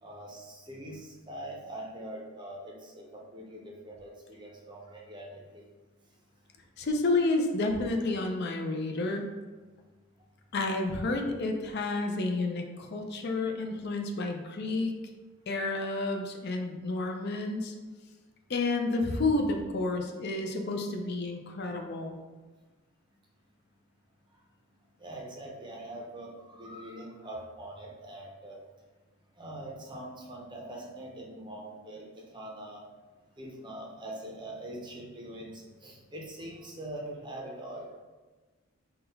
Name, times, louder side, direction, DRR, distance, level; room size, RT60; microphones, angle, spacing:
voice 1, 0.0-5.7 25.0-28.6 29.4-32.8 33.4-37.9, right 1 dB, 20° right, -1 dB, 0.6 m, -43 dB
voice 2, 6.8-9.3 10.5-15.0 15.5-17.7 18.5-22.2, left 2 dB, 50° left, 3 dB, 0.5 m, -30 dB
3.8 x 2.3 x 3.9 m, 1.3 s
head